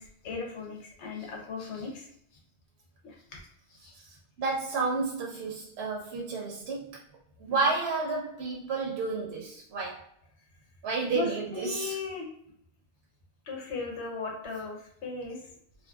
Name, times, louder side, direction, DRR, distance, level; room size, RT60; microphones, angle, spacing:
voice 1, 0.0-2.0 3.0-3.4 3.8-3.9 11.1-12.3 13.5-15.4, left 4 dB, 90° left, 0 dB, 1.1 m, -37 dB
voice 2, 3.9-7.0 7.4-10.0 10.8-12.0, right 4 dB, 75° right, -2 dB, 0.8 m, -31 dB
2.6 x 2.4 x 2.3 m, 0.71 s
omnidirectional pair, 1.1 m